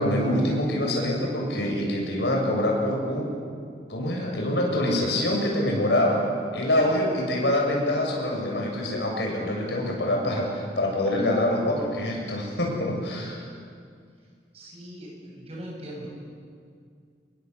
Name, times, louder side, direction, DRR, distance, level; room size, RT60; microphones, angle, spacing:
voice 1, 0.0-3.3 3.9-6.2 6.5-13.4, left 1 dB, 85° left, -1 dB, 7.7 m, -25 dB
voice 2, 14.5-16.1, equal, 35° right, -2 dB, 7.8 m, -40 dB
27.0 x 23.0 x 8.4 m, 2.2 s
head